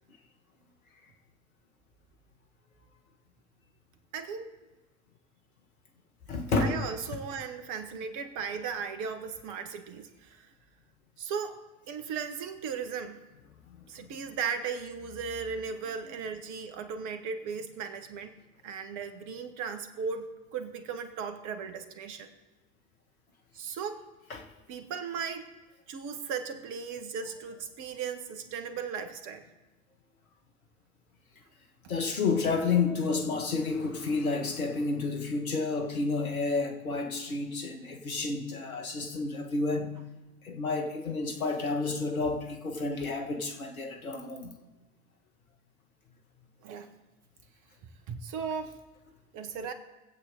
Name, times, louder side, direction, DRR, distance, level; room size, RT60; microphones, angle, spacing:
voice 1, 4.1-4.5 6.6-10.5 11.2-11.6 11.9-13.2 13.9-18.3 18.6-22.3 23.5-24.0 24.7-25.5 25.9-29.4 46.6-46.9 48.1-48.8 49.3-49.7, right 6 dB, 45° right, 1.5 m, -36 dB
voice 2, 6.3-6.8 13.7-14.1 24.3-24.5 31.9-40.0 40.4-44.5, left 3 dB, 80° left, 1.7 m, -30 dB
23.5 x 8.4 x 3.8 m
figure-of-eight pair, 80°, 42 cm